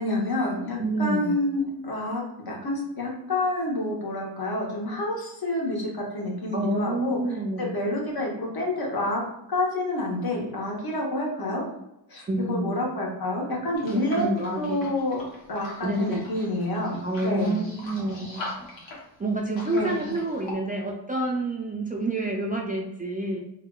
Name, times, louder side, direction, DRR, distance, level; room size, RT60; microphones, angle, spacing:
voice 1, 0.0-7.2 7.6-9.2 9.5-11.6 12.1-14.2 14.6-15.2 15.5-17.6 19.7-20.2, left 1 dB, 55° left, -3 dB, 1.1 m, -28 dB
voice 2, 0.8-1.4 6.5-7.7 12.3-12.8 13.9-14.9 15.8-16.2 17.0-18.4 19.2-23.4, right 2 dB, 20° right, -1 dB, 0.3 m, -28 dB
sound 1, 13.8-20.5, left 2 dB, 80° left, 1.0 m, -42 dB
3.5 x 2.3 x 2.2 m, 0.85 s
cardioid pair, 75°, 44 cm